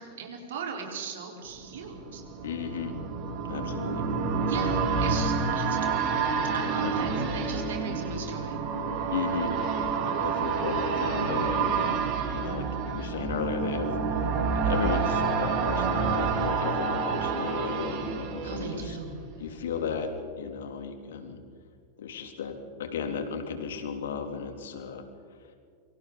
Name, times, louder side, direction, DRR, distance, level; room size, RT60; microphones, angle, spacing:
voice 1, 0.0-2.2 4.5-8.6 18.4-19.1, right 5 dB, 60° right, 1 dB, 4.3 m, -38 dB
sound 1, 1.6-19.4 19.7-19.8, right 5 dB, 45° right, 5.8 m, -29 dB
voice 2, 2.4-2.9 3.5-4.0 6.8-6.9 9.1-9.6 10.0-19.0 19.4-20.1 20.4-21.4 22.0-25.0 25.4-25.5, left 6 dB, 60° left, 6 dB, 3.1 m, -34 dB
27.5 x 25.5 x 4.1 m, 2.2 s
figure-of-eight pair, 90°, 0 cm